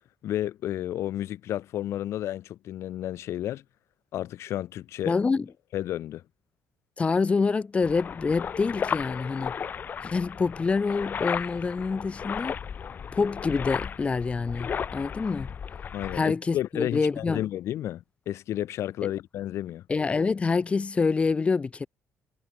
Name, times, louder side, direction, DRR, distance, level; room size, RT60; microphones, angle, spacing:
voice 1, 0.2-3.6 4.1-5.1 5.7-6.2 15.9-19.8, left 12 dB, 75° left, 6.2 m, -32 dB
voice 2, 5.0-5.5 7.0-9.5 10.0-12.5 13.1-15.5 16.1-17.4 19.0-19.1 19.9-21.9, left 4 dB, 25° left, 7.9 m, -26 dB
sound 1, 7.8-16.2, left 7 dB, 40° left, 7.1 m, -34 dB
cardioid pair, 140°, 5 cm